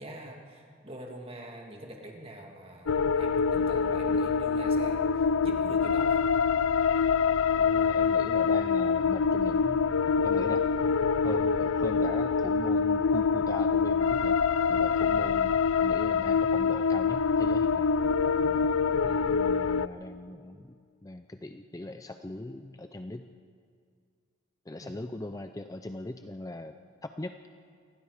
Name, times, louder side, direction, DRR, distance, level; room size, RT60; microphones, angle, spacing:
voice 1, 0.0-6.2 15.1-15.4 19.0-19.2 24.8-25.0, right 1 dB, 25° right, 1 dB, 2.2 m, -44 dB
sound 1, 2.9-19.9, left 5 dB, 70° left, 0.5 m, -25 dB
voice 2, 7.6-10.0 10.2-10.7 11.2-14.4 14.7-17.9 18.5-18.6 19.0-23.3 24.7-27.4, left 2 dB, 15° left, 7 dB, 0.5 m, -40 dB
28.0 x 20.0 x 5.0 m, 2.1 s
head